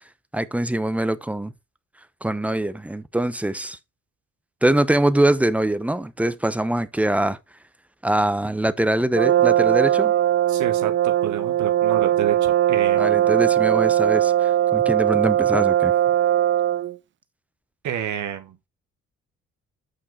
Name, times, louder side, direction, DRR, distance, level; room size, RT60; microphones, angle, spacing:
voice 1, 0.3-1.5 2.2-3.8 4.6-7.4 8.0-10.1 13.0-15.9, right 1 dB, 5° right, 0.8 m, -23 dB
Brass instrument, 9.2-17.0, right 11 dB, 40° right, 0.4 m, -19 dB
voice 2, 10.5-13.3 17.8-18.6, right 10 dB, 70° right, 1.3 m, -30 dB
8.9 x 4.6 x 4.5 m
cardioid pair, 90°, 30 cm